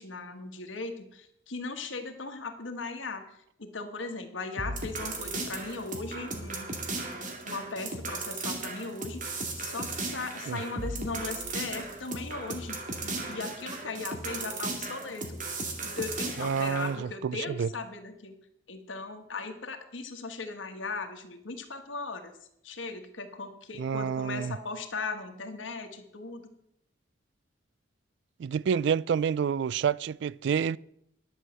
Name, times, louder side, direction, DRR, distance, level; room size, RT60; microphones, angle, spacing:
voice 1, 0.0-6.7 7.4-18.3 18.7-22.3 22.6-26.5, left 3 dB, 80° left, 1.5 m, -38 dB
sound 1, 4.6-17.0, right 3 dB, 45° right, 2.2 m, -36 dB
voice 2, 16.4-17.7 23.8-24.6 28.4-30.8, right 7 dB, 65° right, 0.3 m, -28 dB
11.0 x 6.4 x 7.5 m
head